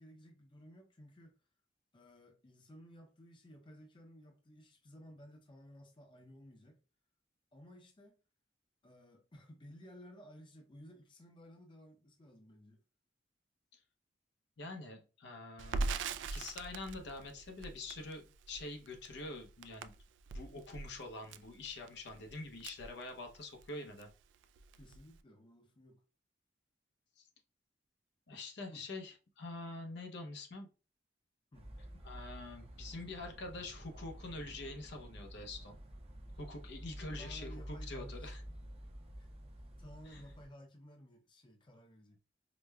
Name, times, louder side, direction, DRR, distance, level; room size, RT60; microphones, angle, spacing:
voice 1, 0.0-1.3 1.9-6.8 7.5-8.2 8.8-12.8 24.8-26.0 28.7-28.8 31.5-31.7 37.1-38.3 39.2-42.2, equal, 30° left, 0.5 m, -56 dB
voice 2, 14.6-16.0 16.3-19.9 20.3-24.1 27.2-27.3 28.3-30.7 32.0-35.8 36.4-38.4 40.1-40.2, left 2 dB, 65° left, 0.7 m, -46 dB
Crackle, 15.6-23.7 24.0-24.1 24.4-25.2, right 3 dB, 75° right, 0.3 m, -42 dB
sound 1, 31.5-40.5, equal, 35° right, 0.6 m, -49 dB
4.9 x 2.1 x 2.2 m
head